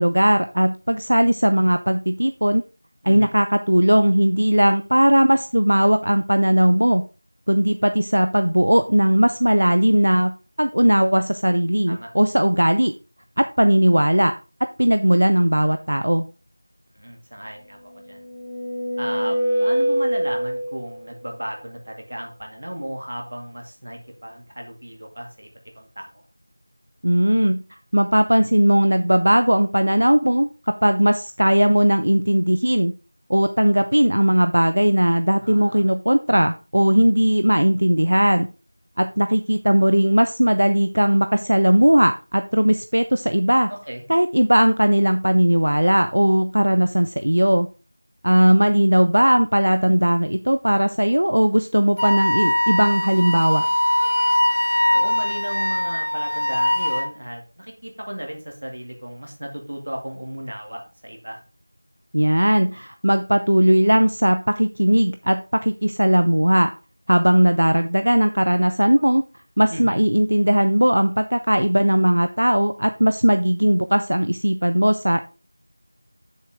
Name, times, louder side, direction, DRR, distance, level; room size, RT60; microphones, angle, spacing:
voice 1, 0.0-2.6 3.0-7.0 7.5-10.3 10.6-12.9 13.4-14.3 14.8-16.2 27.0-27.6 27.9-30.5 30.8-32.9 33.3-38.5 39.0-43.7 44.1-47.7 48.2-53.7 62.1-66.7 67.1-69.2 69.6-75.2, equal, 70° right, 9 dB, 0.6 m, -18 dB
voice 2, 16.9-18.2 19.0-25.5 25.8-26.2 35.4-35.8 43.7-44.0 54.9-61.4 69.7-70.0, equal, 45° right, 2 dB, 2.2 m, -35 dB
sound 1, 17.9-21.0, right 1 dB, 10° left, 0.4 m, -24 dB
Wind instrument woodwind instrument, 52.0-57.1, left 1 dB, 40° left, 1.5 m, -21 dB
8.1 x 7.2 x 3.5 m, 0.33 s
figure-of-eight pair, 180°, 0 cm